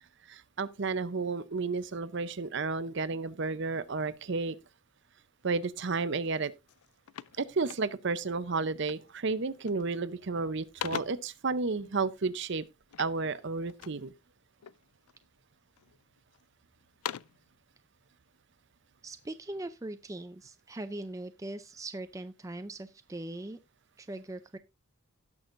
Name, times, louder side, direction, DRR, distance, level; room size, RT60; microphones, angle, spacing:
voice 1, 0.3-4.6 5.4-6.5 7.4-12.6 13.0-14.1, right 4 dB, 55° right, 0.6 m, -32 dB
sound 1, 6.2-6.4 6.7-8.2 8.9-9.2 9.5-10.0 10.4-11.4 12.9-14.1 14.6-15.2 15.8-16.4 16.8-17.5, left 10 dB, 90° left, 0.4 m, -43 dB
voice 2, 19.0-23.6 24.0-24.6, right 2 dB, 15° right, 0.4 m, -40 dB
17.5 x 6.3 x 2.5 m
head